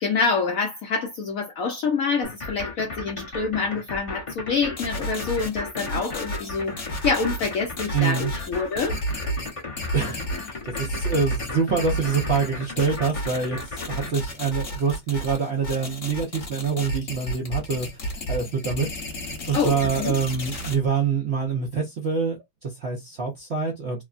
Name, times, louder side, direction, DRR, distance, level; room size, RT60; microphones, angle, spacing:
voice 1, 0.0-9.0 19.5-20.2, left 4 dB, 70° left, 0.8 m, -26 dB
sound 1, 2.2-14.1, left 3 dB, 25° left, 0.7 m, -35 dB
sound 2, 4.8-20.7, equal, 45° left, 1.3 m, -32 dB
voice 2, 7.9-8.3 9.9-18.9 19.3-24.0, right 5 dB, 60° right, 0.7 m, -26 dB
3.5 x 2.1 x 2.4 m
omnidirectional pair, 2.0 m